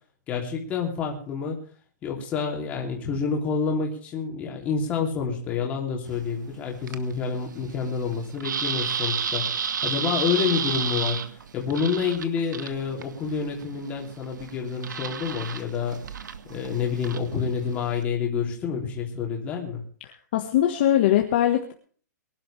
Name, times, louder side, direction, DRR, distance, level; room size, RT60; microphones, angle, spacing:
voice 1, 0.3-1.6 2.0-16.1 16.5-19.8, left 6 dB, 15° left, 0 dB, 3.1 m, -28 dB
sound 1, 6.0-18.0, right 7 dB, 90° right, 1.7 m, -33 dB
voice 2, 20.3-21.7, left 12 dB, 35° left, 3 dB, 1.5 m, -21 dB
23.5 x 12.0 x 3.4 m, 0.43 s
hypercardioid pair, 175°, 10 cm